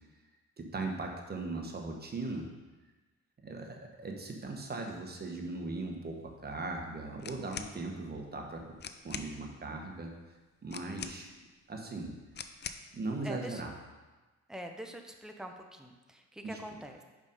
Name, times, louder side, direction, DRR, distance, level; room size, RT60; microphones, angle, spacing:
voice 1, 0.6-2.5 3.4-8.6 9.0-10.1 10.6-11.3 11.7-12.1 12.9-13.7 16.4-16.6, right 3 dB, 30° right, 1 dB, 1.2 m, -38 dB
sound 1, 7.2-7.8 8.5-8.6 8.8-9.3 10.7-11.4 12.3-12.9, left 7 dB, 35° left, 0.5 m, -43 dB
voice 2, 13.2-13.6 14.5-17.0, right 1 dB, ahead, 4 dB, 0.7 m, -44 dB
5.2 x 5.0 x 5.4 m, 1.2 s
cardioid pair, 90°, 30 cm